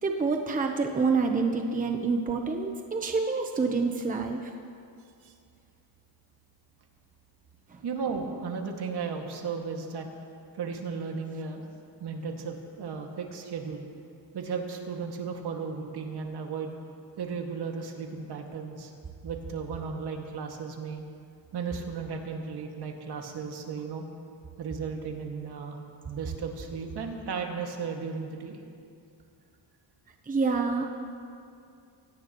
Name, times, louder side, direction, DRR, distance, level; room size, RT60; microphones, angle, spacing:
voice 1, 0.0-4.5 7.7-7.8 30.3-31.0, right 4 dB, 20° right, 3 dB, 0.9 m, -27 dB
voice 2, 7.8-10.1 10.5-11.7 12.0-13.8 14.3-16.8 17.2-18.9 19.2-21.0 21.5-24.1 24.6-28.6, right 5 dB, 60° right, 2 dB, 2.2 m, -35 dB
25.0 x 17.5 x 3.1 m, 2.4 s
cardioid pair, 135°, 45 cm